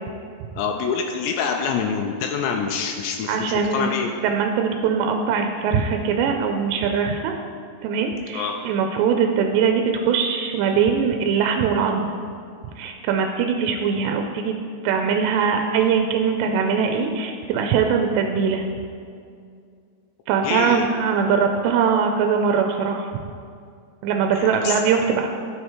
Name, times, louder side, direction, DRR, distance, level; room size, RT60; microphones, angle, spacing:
voice 1, 0.6-4.1 8.3-8.5 20.4-20.9 24.4-24.9, left 6 dB, 85° left, 3 dB, 2.7 m, -26 dB
voice 2, 3.3-4.0 4.2-7.3 7.8-12.1 12.8-14.5 14.8-18.6 20.3-23.1 24.0-25.3, right 6 dB, 90° right, 4 dB, 2.8 m, -21 dB
12.0 x 4.8 x 4.4 m, 2.3 s
omnidirectional pair, 4.8 m